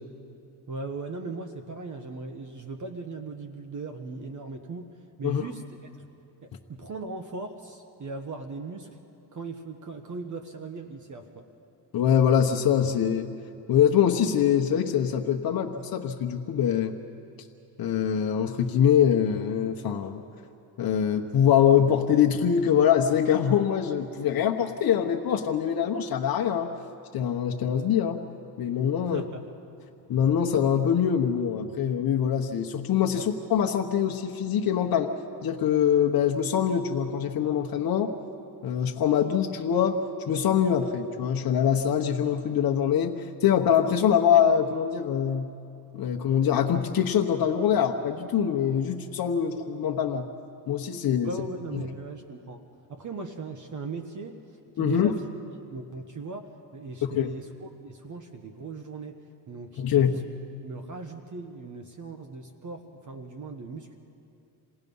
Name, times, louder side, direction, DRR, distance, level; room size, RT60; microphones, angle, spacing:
voice 1, 0.7-5.6 6.4-8.9 9.3-11.5 29.0-29.4 33.1-33.3 51.2-52.6 52.9-55.2 55.7-59.1 59.5-60.2 60.6-64.0, right 3 dB, 40° right, 5 dB, 1.4 m, -38 dB
voice 2, 11.9-13.3 13.7-16.9 17.8-20.2 20.8-26.7 27.1-28.2 28.6-29.2 30.1-35.1 35.4-38.1 38.6-45.5 45.9-50.3 50.7-51.3 51.7-51.8 54.8-55.1 57.0-57.3 59.8-60.2, left 8 dB, 55° left, 1 dB, 1.1 m, -24 dB
28.5 x 18.0 x 5.5 m, 2.7 s
cardioid pair, 90°, 43 cm